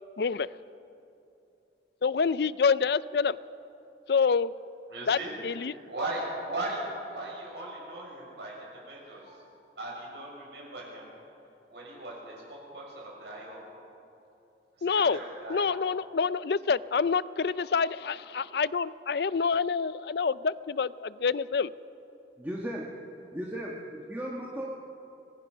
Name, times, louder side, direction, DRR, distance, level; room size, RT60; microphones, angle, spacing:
voice 1, 0.2-0.5 2.0-3.4 4.1-4.5 5.1-5.2 5.4-5.7 14.8-15.2 15.5-21.7, left 5 dB, 60° left, 18 dB, 0.4 m, -27 dB
voice 2, 4.9-11.1 11.7-13.6 14.8-15.8, right 1 dB, 70° right, -2 dB, 6.9 m, -38 dB
voice 3, 22.4-22.9 23.3-24.7, equal, 10° right, -2 dB, 1.5 m, -36 dB
25.5 x 21.0 x 5.6 m, 2.8 s
head